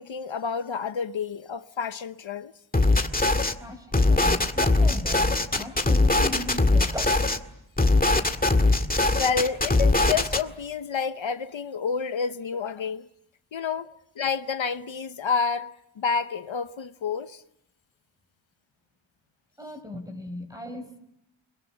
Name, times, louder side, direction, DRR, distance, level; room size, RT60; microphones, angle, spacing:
voice 1, 0.0-2.5 9.2-13.1 13.5-13.9 14.2-17.4, left 5 dB, 70° left, 1.0 m, -29 dB
sound 1, 2.7-3.5 3.9-7.4 7.8-10.4, left 2 dB, 20° left, 1.9 m, -21 dB
voice 2, 3.6-7.3 19.6-21.0, left 1 dB, 5° right, 5.8 m, -38 dB
29.0 x 22.0 x 8.1 m
wide cardioid pair, 120°, 48 cm